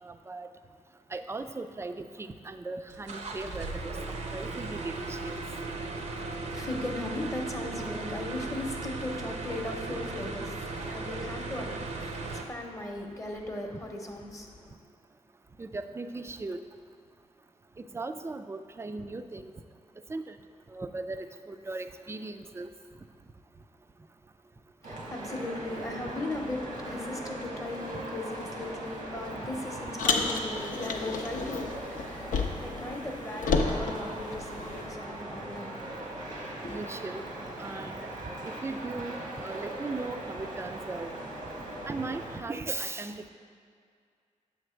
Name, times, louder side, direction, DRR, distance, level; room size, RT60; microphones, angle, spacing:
voice 1, 0.0-0.5 1.1-3.9 4.3-5.4 15.6-16.6 17.9-19.5 20.1-20.4 20.7-22.7 30.5-30.7 36.7-37.2 37.6-38.1 38.4-41.1 41.9-43.3, right 3 dB, 20° right, 9 dB, 0.4 m, -38 dB
sound 1, 2.9-12.4, right 3 dB, 60° right, 0.7 m, -37 dB
voice 2, 6.5-14.7 24.8-35.9 36.6-36.8, left 2 dB, 25° left, 1 dB, 0.9 m, -38 dB
sound 2, 24.8-42.4, right 1 dB, 85° right, 1.2 m, -40 dB
Car, 30.0-32.8 33.1-34.9, left 4 dB, 80° left, 0.6 m, -31 dB
7.0 x 3.3 x 6.2 m, 2.2 s
cardioid pair, 70°, 13 cm